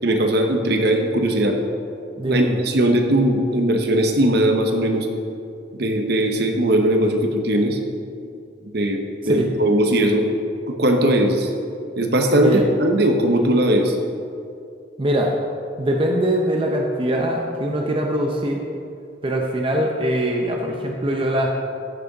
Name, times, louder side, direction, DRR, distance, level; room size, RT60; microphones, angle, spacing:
voice 1, 0.0-1.6 2.3-5.1 5.7-7.8 8.7-10.2 10.7-11.5 12.0-14.0, right 1 dB, 60° right, 4 dB, 1.0 m, -19 dB
voice 2, 2.2-2.6 9.3-9.5 12.4-12.7 15.0-15.4 15.8-18.6 19.2-21.5, right 1 dB, 30° right, 1 dB, 0.7 m, -22 dB
14.0 x 6.2 x 4.0 m, 2.5 s
head